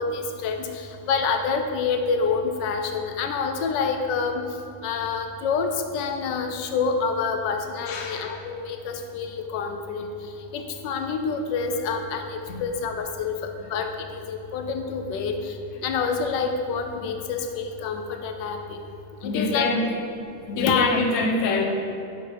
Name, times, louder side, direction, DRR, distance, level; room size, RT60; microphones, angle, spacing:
voice 1, 0.0-4.5 4.8-18.8 19.2-19.7 20.5-21.0, left 5 dB, 80° left, 5 dB, 1.3 m, -27 dB
voice 2, 7.9-8.4 12.5-12.6 19.2-20.0 20.5-21.6, left 3 dB, 55° left, 2 dB, 1.0 m, -25 dB
7.1 x 5.9 x 4.7 m, 2.6 s
omnidirectional pair, 1.9 m